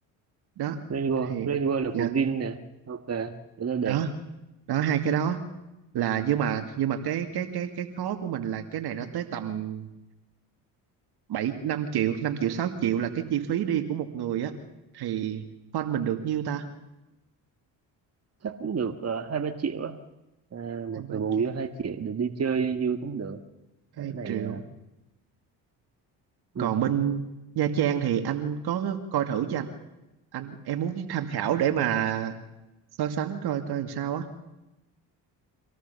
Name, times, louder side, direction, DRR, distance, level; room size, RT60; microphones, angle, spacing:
voice 1, 0.9-2.6 2.9-4.0 18.4-20.0 20.5-23.4 24.0-24.6 26.6-26.7, right 6 dB, 40° right, 8 dB, 1.7 m, -29 dB
voice 2, 4.7-5.4 5.9-9.9 11.3-14.5 14.9-15.4 15.7-16.7 21.0-21.2 24.0-24.6 26.6-27.3 27.6-29.7 30.3-32.4 33.0-34.3, right 9 dB, 70° right, 8 dB, 2.3 m, -28 dB
25.5 x 17.5 x 7.0 m, 0.96 s
supercardioid pair, 75°, 40 cm